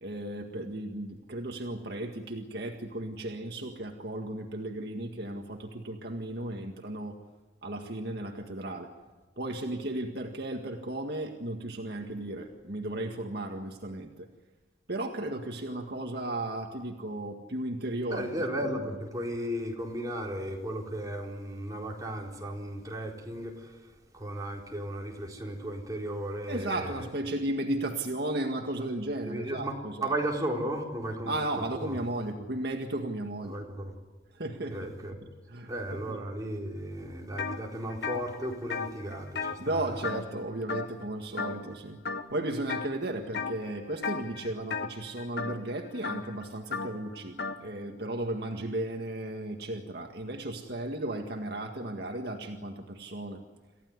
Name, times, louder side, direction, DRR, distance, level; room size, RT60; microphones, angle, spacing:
voice 1, 0.0-7.2 7.6-8.9 9.4-14.3 14.9-18.3 18.6-18.9 26.5-30.1 31.3-33.6 34.3-34.9 35.5-36.2 39.6-42.0 42.3-53.4, right 1 dB, 60° right, 3 dB, 1.9 m, -35 dB
voice 2, 18.1-23.8 24.1-27.0 29.2-29.8 30.0-32.0 33.5-33.9 34.7-35.3 35.7-39.9, right 1 dB, 20° right, -1 dB, 4.3 m, -35 dB
sound 1, 37.4-37.6 37.9-40.4 40.7-41.1 41.4-41.7 42.0-42.9 43.3-43.7 44.0-47.6, left 5 dB, 60° left, 1.5 m, -35 dB
28.5 x 15.5 x 9.6 m, 1.2 s
head